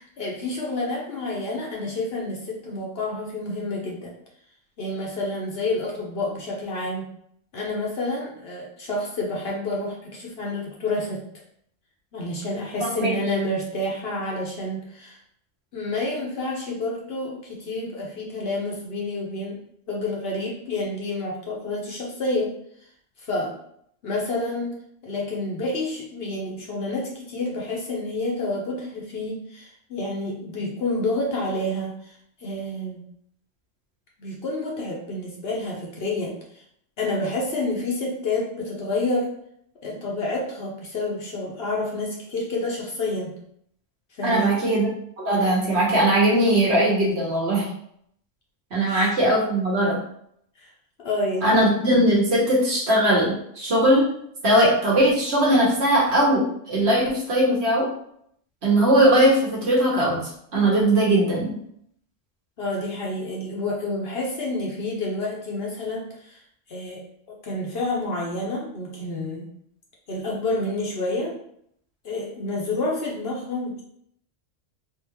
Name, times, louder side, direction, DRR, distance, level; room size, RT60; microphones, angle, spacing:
voice 1, 0.0-4.1 4.8-7.1 7.5-11.2 12.1-15.2 15.7-19.6 19.9-22.5 23.2-23.6 24.0-24.7 25.0-33.1 34.2-36.6 37.0-39.3 39.8-43.3 44.1-44.7 48.9-49.1 50.6-50.7 51.0-51.6 62.6-66.4 66.7-69.5 70.1-71.3 72.0-73.8, left 2 dB, 60° left, -2 dB, 0.8 m, -29 dB
voice 2, 12.8-13.1 44.2-44.9 45.2-47.6 48.7-50.0 51.4-54.0 54.4-57.9 58.6-60.2 60.5-61.5, right 1 dB, 55° right, -4 dB, 1.2 m, -20 dB
3.5 x 2.4 x 2.9 m, 0.70 s
omnidirectional pair, 1.3 m